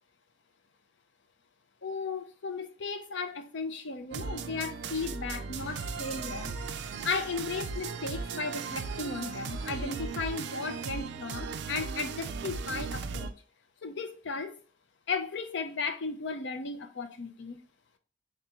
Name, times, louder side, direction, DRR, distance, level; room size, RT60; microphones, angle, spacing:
voice 1, 1.8-6.5 7.0-13.3 13.8-14.6 15.1-17.6, left 4 dB, 60° left, 0.5 m, -35 dB
sound 1, 4.1-13.3, right 5 dB, 55° right, 0.3 m, -37 dB
sound 2, 5.5-11.0, equal, 85° left, 1.5 m, -49 dB
3.6 x 2.9 x 3.6 m
head